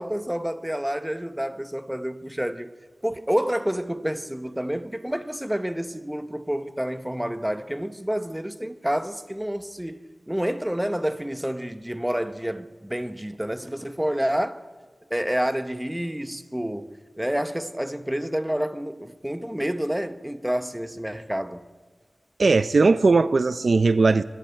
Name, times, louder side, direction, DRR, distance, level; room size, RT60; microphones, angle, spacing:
voice 1, 0.0-2.7 3.0-14.6 15.1-21.6, equal, 5° right, 0.9 m, -29 dB
voice 2, 22.4-24.2, right 3 dB, 65° right, 0.6 m, -18 dB
25.0 x 23.0 x 4.5 m
wide cardioid pair, 85°, 0 cm